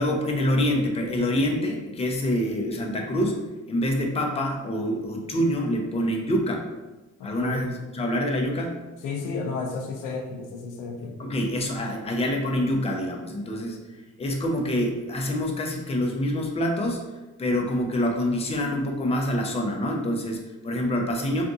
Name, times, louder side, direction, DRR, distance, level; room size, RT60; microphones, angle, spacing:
voice 1, 0.0-3.4 3.7-6.6 7.2-8.7 11.2-13.8 14.2-17.0 17.4-21.4, equal, 20° left, 1 dB, 0.5 m, -26 dB
voice 2, 7.2-7.6 9.0-11.2, left 4 dB, 90° left, 2 dB, 0.6 m, -32 dB
2.6 x 2.5 x 3.5 m, 1.1 s
cardioid pair, 90°, 30 cm